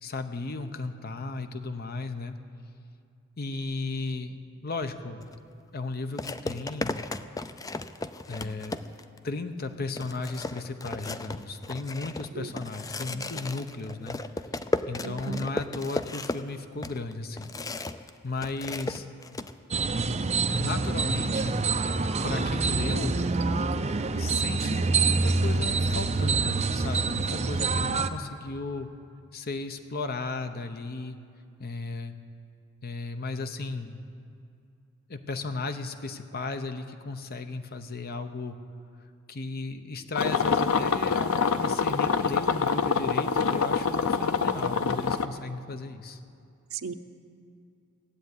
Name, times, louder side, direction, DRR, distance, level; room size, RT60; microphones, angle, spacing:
voice 1, 0.0-2.4 3.4-4.4 4.6-5.3 5.7-7.1 8.3-8.8 9.2-14.2 14.9-17.5 18.2-19.1 20.6-21.6 22.2-23.1 24.2-28.9 29.3-31.2 31.6-32.2 32.8-34.0 35.1-38.6 39.3-46.2, left 3 dB, 50° left, 8 dB, 0.9 m, -35 dB
sound 1, 5.2-5.4 6.2-9.2 9.6-9.7 10.0-18.1 18.4-19.5, left 2 dB, 15° left, 0.4 m, -35 dB
voice 2, 15.0-15.5 46.7-46.9, right 5 dB, 75° right, 9 dB, 0.7 m, -36 dB
sound 2, 19.7-28.1, right 4 dB, 30° right, 0.6 m, -26 dB
sound 3, 40.2-45.3, left 5 dB, 85° left, 0.6 m, -25 dB
16.0 x 8.0 x 9.7 m, 2.5 s
head